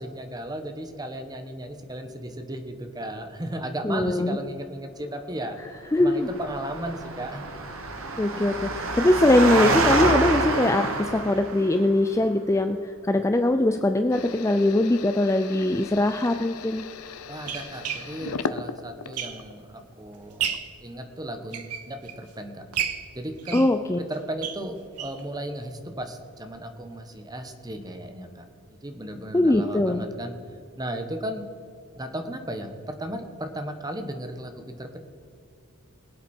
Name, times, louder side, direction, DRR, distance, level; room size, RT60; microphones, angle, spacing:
voice 1, 0.0-5.6 6.0-7.4 17.3-22.7 23.1-23.7 24.0-28.4 28.8-30.3 30.7-31.4 32.0-35.0, right 1 dB, 15° right, 6 dB, 1.2 m, -35 dB
voice 2, 3.8-4.4 5.9-6.3 8.2-10.9 11.1-12.8 13.0-16.8 23.5-24.0 29.3-30.1, left 1 dB, 15° left, 7 dB, 0.4 m, -21 dB
Engine, 6.1-11.8, right 2 dB, 65° right, 1.4 m, -26 dB
sound 1, 14.1-19.6 20.1-20.8, left 5 dB, 80° left, 0.6 m, -37 dB
sound 2, 15.8-16.0 16.8-19.7 20.1-20.8 21.3-22.3 22.7-25.3 25.6-25.7 26.0-26.1 26.5-26.6, right 8 dB, 90° right, 1.0 m, -33 dB
22.5 x 8.1 x 4.4 m, 2.5 s
head